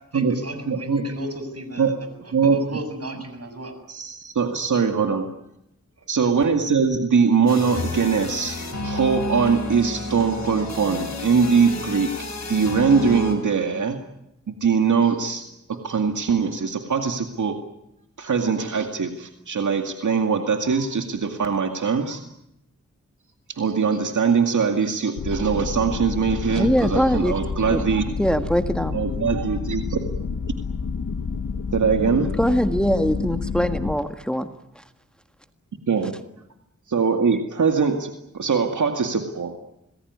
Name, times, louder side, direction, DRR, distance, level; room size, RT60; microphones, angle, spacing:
voice 1, 0.1-3.7 6.0-6.3, right 1 dB, 55° right, 8 dB, 7.3 m, -35 dB
voice 2, 0.7-1.0 1.8-1.9 2.3-2.6 3.9-5.3 6.1-8.6 8.8-12.1 12.5-14.0 14.5-17.6 18.2-22.2 23.5-28.0 28.9-30.0 31.7-32.3 35.9-36.2 36.9-39.6, right 5 dB, 80° right, 5 dB, 2.2 m, -22 dB
sound 1, 7.5-13.3, left 2 dB, 65° left, 7.4 m, -30 dB
sound 2, 25.2-34.0, left 5 dB, 85° left, 1.5 m, -29 dB
voice 3, 26.5-27.3 27.7-27.8 28.2-29.0 32.4-34.4 34.7-34.8, equal, 5° left, 7 dB, 1.7 m, -22 dB
27.0 x 20.0 x 9.6 m, 0.84 s
cardioid pair, 55°, 30 cm